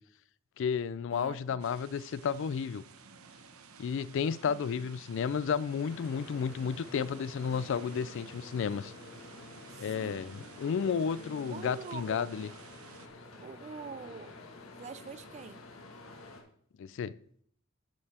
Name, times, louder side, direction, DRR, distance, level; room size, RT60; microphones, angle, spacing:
voice 1, 0.6-2.8 3.8-8.9 9.8-12.5 16.8-17.2, left 6 dB, 60° left, 0.3 m, -32 dB
voice 2, 1.1-1.6 4.4-4.6 9.7-10.2 11.5-12.3 13.4-14.4 14.8-15.6, right 5 dB, 30° right, 0.4 m, -44 dB
sound 1, 1.6-13.1, right 6 dB, 85° right, 0.9 m, -54 dB
sound 2, 5.8-16.4, left 2 dB, 75° left, 1.5 m, -49 dB
10.5 x 6.7 x 4.2 m
head